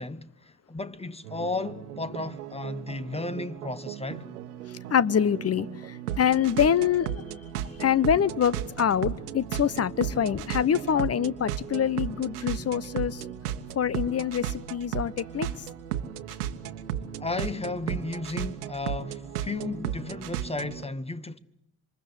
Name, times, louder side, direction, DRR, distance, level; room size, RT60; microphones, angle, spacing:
voice 1, 0.0-4.3 17.2-21.4, left 3 dB, 15° left, 1.3 m, -34 dB
sound 1, 1.2-20.8, right 10 dB, 85° right, 1.3 m, -35 dB
voice 2, 4.9-7.1 7.8-13.2 13.8-15.5, left 8 dB, 35° left, 0.9 m, -25 dB
27.0 x 24.5 x 8.0 m
hypercardioid pair, 50°, 44 cm